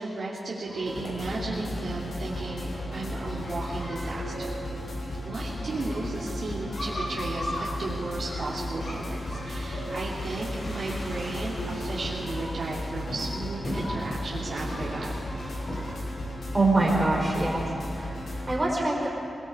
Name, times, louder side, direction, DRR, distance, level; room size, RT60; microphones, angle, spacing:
voice 1, 0.0-4.7 5.2-15.1, right 2 dB, 60° right, -7 dB, 3.1 m, -34 dB
sound 1, 0.7-16.0, equal, 60° left, 5.8 m, -39 dB
sound 2, 0.8-18.5, left 1 dB, 90° left, 5.7 m, -35 dB
voice 2, 16.5-17.7 17.9-19.1, right 2 dB, 25° right, -3 dB, 4.5 m, -24 dB
26.5 x 19.5 x 5.0 m, 2.5 s
wide cardioid pair, 135°, 0 cm